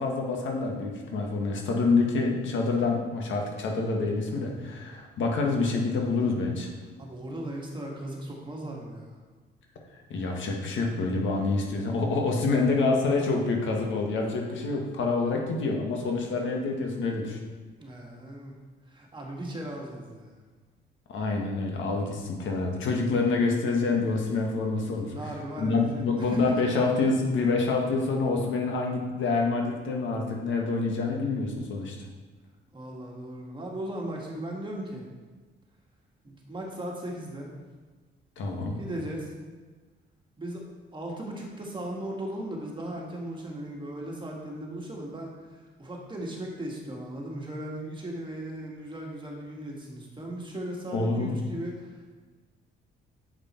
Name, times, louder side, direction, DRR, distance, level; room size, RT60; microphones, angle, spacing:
voice 1, 0.0-6.7 10.1-17.4 21.1-25.1 25.6-32.0 38.4-38.8 50.9-51.3, left 3 dB, 70° left, 1 dB, 1.5 m, -27 dB
voice 2, 7.0-9.2 17.8-18.6 18.9-20.4 25.1-26.7 32.7-35.0 36.2-37.5 38.8-39.3 40.4-40.6 40.9-52.0, right 1 dB, 25° right, -1 dB, 1.9 m, -37 dB
8.0 x 5.3 x 4.4 m, 1.4 s
cardioid pair, 90°, 20 cm